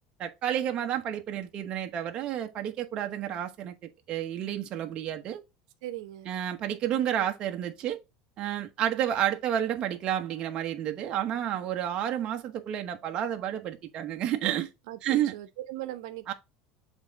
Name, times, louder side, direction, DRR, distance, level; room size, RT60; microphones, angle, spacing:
voice 1, 0.2-3.7 4.1-5.4 6.3-8.0 8.4-14.7 15.0-15.3 16.3-16.4, right 10 dB, 40° right, 1.1 m, -30 dB
voice 2, 5.8-6.3 14.9-16.3, right 14 dB, 80° right, 0.9 m, -39 dB
7.3 x 3.6 x 4.0 m
supercardioid pair, 135°, 2 cm